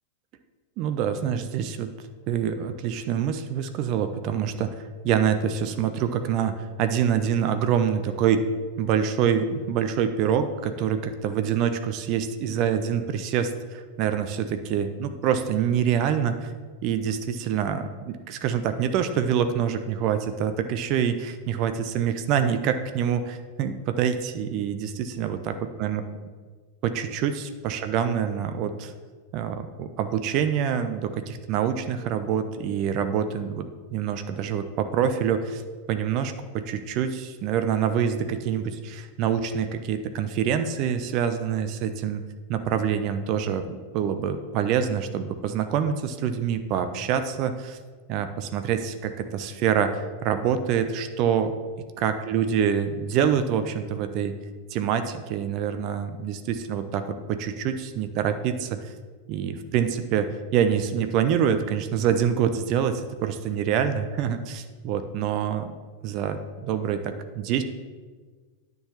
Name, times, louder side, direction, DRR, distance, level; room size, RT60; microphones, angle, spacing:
voice 1, 0.8-1.9 2.3-4.7 5.0-8.4 8.8-16.5 16.8-26.0 26.8-28.9 29.3-35.6 35.9-42.2 42.5-47.8 48.1-51.5 52.0-54.4 54.7-58.9 59.3-65.7 66.0-67.6, right 8 dB, 40° right, 9 dB, 0.6 m, -26 dB
10.0 x 4.0 x 7.1 m, 1.4 s
figure-of-eight pair, 90°, 0 cm